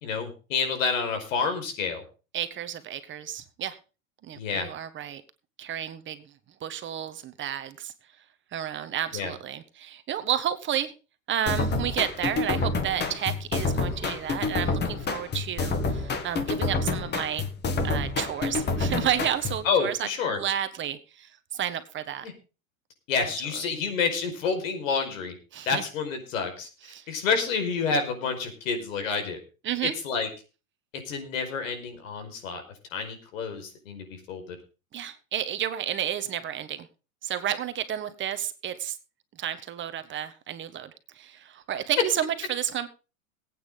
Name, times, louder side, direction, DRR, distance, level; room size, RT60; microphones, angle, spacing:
voice 1, 0.0-2.0 4.3-4.7 9.1-9.3 19.6-20.4 22.2-22.3 23.1-25.3 25.7-26.7 27.1-29.4 30.0-30.3 31.1-32.6 32.9-34.4, left 5 dB, 70° left, 6 dB, 5.0 m, -28 dB
voice 2, 2.3-3.8 4.2-5.2 5.6-6.2 6.6-7.9 8.5-10.9 11.3-17.5 17.8-22.3 23.2-23.3 25.5-25.8 26.8-27.1 29.6-29.9 34.9-36.9 37.2-39.0 39.4-42.9, right 10 dB, 30° right, 10 dB, 1.4 m, -31 dB
sound 1, 11.5-19.7, left 3 dB, 25° left, 2.1 m, -28 dB
20.5 x 8.9 x 3.8 m, 0.33 s
hypercardioid pair, 120°, 41 cm